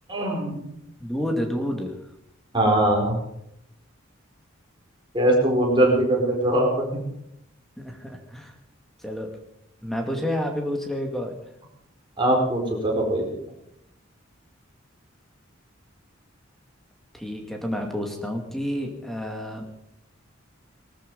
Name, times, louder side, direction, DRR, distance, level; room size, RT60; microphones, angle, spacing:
voice 1, 0.1-0.7 2.5-3.2 5.1-6.7 12.2-13.3, right 1 dB, 25° right, -1 dB, 4.5 m, -21 dB
voice 2, 1.0-1.9 7.8-8.5 9.0-9.3 9.8-11.4 17.1-19.6, equal, ahead, 3 dB, 2.4 m, -29 dB
19.5 x 13.0 x 5.5 m, 0.78 s
head